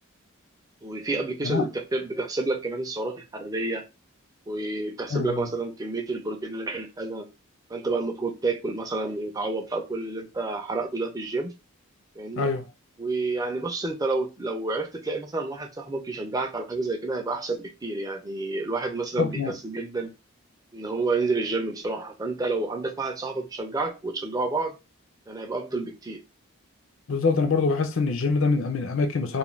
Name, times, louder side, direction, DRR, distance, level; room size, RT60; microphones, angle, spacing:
voice 1, 0.8-3.8 4.5-7.3 7.7-11.5 12.2-12.5 13.0-20.1 20.7-24.8 25.3-26.2, right 3 dB, 15° right, 0.4 m, -29 dB
voice 2, 5.1-5.5 12.4-12.6 19.2-19.5 27.1-29.4, left 4 dB, 60° left, 0.5 m, -24 dB
2.4 x 2.2 x 3.1 m
head